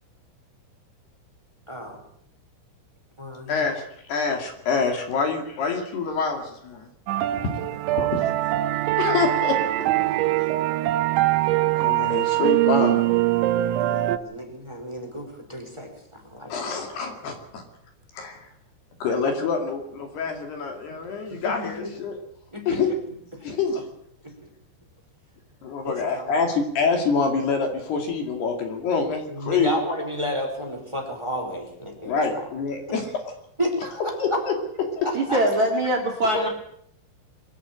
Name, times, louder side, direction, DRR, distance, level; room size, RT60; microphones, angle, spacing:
voice 1, 1.7-2.0 3.2-3.7 7.9-8.3 13.8-16.5 21.3-21.9 22.5-23.0 23.3-23.6 24.2-24.5 25.8-26.4 29.3-32.4 32.9-33.0 33.6-34.4 35.0-35.4, equal, 5° right, 4 dB, 4.0 m, -32 dB
voice 2, 3.5-3.8 4.1-6.9 8.0-8.3 9.0-9.6 11.6-13.0 16.5-17.6 18.2-18.4 19.0-22.2 22.7-22.9 23.4-23.8 25.6-29.7 32.0-33.0 34.2-34.5 35.0-35.1 36.3-36.4, left 5 dB, 55° left, 4 dB, 4.2 m, -26 dB
sound 1, 7.1-14.2, right 16 dB, 75° right, 3.0 m, -22 dB
voice 3, 35.1-36.5, right 1 dB, 45° right, 0 dB, 3.2 m, -22 dB
24.0 x 14.0 x 8.8 m, 0.69 s
omnidirectional pair, 5.9 m